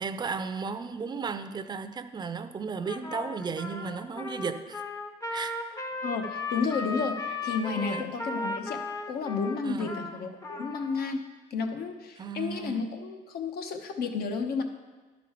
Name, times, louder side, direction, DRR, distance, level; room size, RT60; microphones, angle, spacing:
voice 1, 0.0-4.8 5.3-5.6 7.7-8.1 9.6-10.2 12.2-12.8, right 5 dB, 25° right, 10 dB, 0.5 m, -35 dB
Trumpet, 2.8-11.1, left 3 dB, 20° left, 0.6 m, -36 dB
voice 2, 6.0-8.8 9.1-11.2 11.5-14.6, left 5 dB, 65° left, 5 dB, 0.9 m, -32 dB
11.0 x 5.4 x 4.4 m, 1.3 s
cardioid pair, 110°, 17 cm